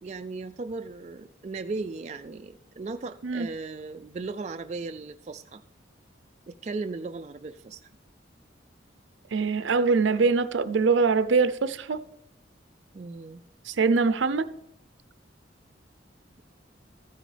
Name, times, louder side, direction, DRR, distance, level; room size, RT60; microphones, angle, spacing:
voice 1, 0.0-5.6 6.5-7.9 12.9-13.4, right 3 dB, 35° right, 0.3 m, -37 dB
voice 2, 9.3-12.0 13.7-14.5, right 4 dB, 80° right, 0.6 m, -23 dB
14.0 x 9.9 x 3.3 m
head